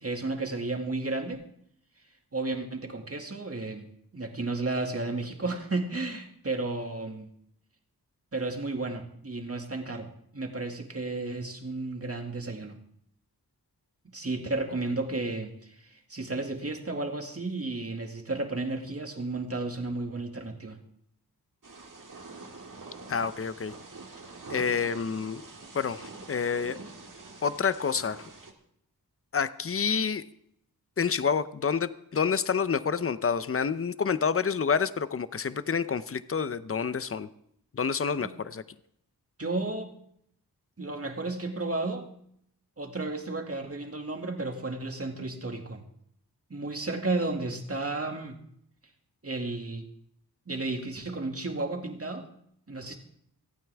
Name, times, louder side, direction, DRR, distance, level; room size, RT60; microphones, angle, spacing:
voice 1, 0.0-1.4 2.3-3.9 4.1-7.3 8.3-12.8 14.0-20.8 38.2-38.3 39.4-40.0 40.8-42.1 42.8-45.8 46.5-48.4 49.2-49.9 50.5-52.3 52.7-53.0, right 2 dB, 40° right, 3 dB, 2.2 m, -33 dB
Thunder / Rain, 21.6-28.5, right 3 dB, 55° right, 2.1 m, -45 dB
voice 2, 23.1-23.7 24.5-25.4 25.7-26.8 27.4-28.3 29.3-30.2 31.0-37.3 37.7-38.6, left 6 dB, 35° left, 14 dB, 0.7 m, -28 dB
27.0 x 9.2 x 3.5 m, 0.70 s
wide cardioid pair, 55°, 37 cm